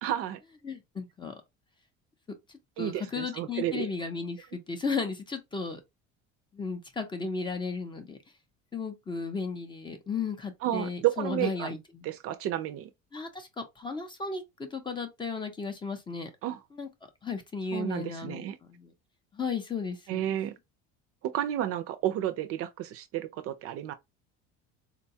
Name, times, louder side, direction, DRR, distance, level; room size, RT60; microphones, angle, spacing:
voice 1, 0.0-0.4 2.8-3.9 10.6-11.7 12.0-12.9 16.4-16.6 17.7-18.6 20.1-20.6 21.2-23.9, right 12 dB, 50° right, 0.4 m, -31 dB
voice 2, 0.6-1.4 2.8-5.8 6.5-8.2 8.7-12.1 13.1-16.3 16.7-16.9 17.2-18.9 19.3-20.3, left 4 dB, 15° left, 0.5 m, -35 dB
3.8 x 2.2 x 2.7 m
cardioid pair, 150°, 29 cm